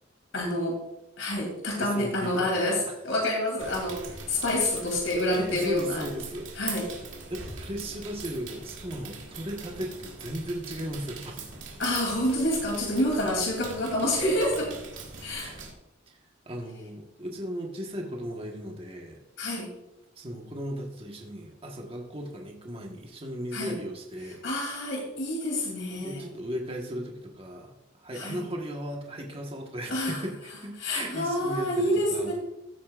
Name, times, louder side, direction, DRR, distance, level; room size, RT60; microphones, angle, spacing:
voice 1, 0.3-0.8 1.2-4.0 4.3-6.0 6.6-6.9 11.8-14.7 15.2-15.5 19.4-19.7 23.5-23.8 24.4-26.2 28.1-28.4 29.9-30.2 30.8-32.3, left 1 dB, 75° left, -1 dB, 3.0 m, -28 dB
voice 2, 1.8-2.9 5.5-6.5 7.3-11.5 15.4-15.6 16.1-16.2 16.4-19.2 20.2-24.4 26.0-32.3, equal, 30° right, 1 dB, 1.3 m, -36 dB
sound 1, 3.6-15.7, right 4 dB, 75° right, 2.0 m, -42 dB
15.5 x 8.5 x 2.5 m, 0.89 s
head